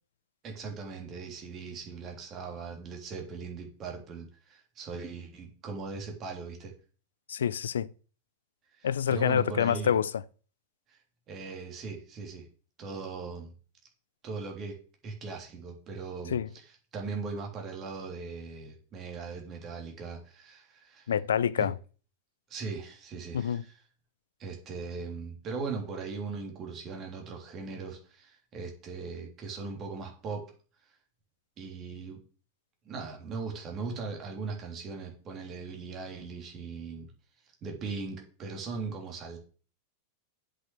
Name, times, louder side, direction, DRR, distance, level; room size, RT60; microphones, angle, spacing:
voice 1, 0.4-6.7 8.7-9.9 10.9-11.0 11.3-12.5 12.8-13.5 14.2-14.8 15.0-21.1 21.6-21.7 22.5-23.8 24.4-30.4 31.6-32.2 32.8-37.1 37.6-39.4, right 4 dB, 30° right, 3.3 m, -39 dB
voice 2, 7.3-7.9 8.8-10.1 16.3-16.5 21.1-21.7 23.3-23.6, left 8 dB, 65° left, 0.5 m, -27 dB
7.8 x 6.4 x 7.8 m
figure-of-eight pair, 90°, 0 cm